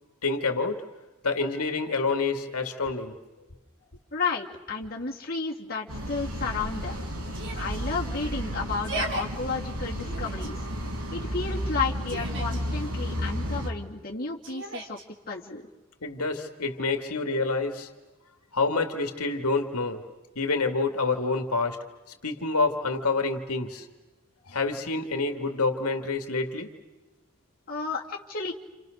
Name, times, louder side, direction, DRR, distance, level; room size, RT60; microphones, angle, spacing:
voice 1, 0.2-0.9 1.2-3.2 16.0-17.9 18.5-20.0 20.4-21.8 22.2-23.9 24.5-26.7, left 3 dB, 85° left, 6 dB, 2.3 m, -27 dB
voice 2, 4.1-7.0 7.6-10.6 11.1-15.0 15.3-15.6 27.7-28.5, left 4 dB, 40° left, -2 dB, 2.8 m, -32 dB
sound 1, 5.9-13.7, equal, 90° right, 4.7 m, -32 dB
Yell, 7.3-7.8 8.7-9.2 10.0-10.5 11.7-12.6 14.4-15.0, right 2 dB, 55° right, 3.3 m, -36 dB
29.5 x 29.0 x 6.6 m, 1.1 s
head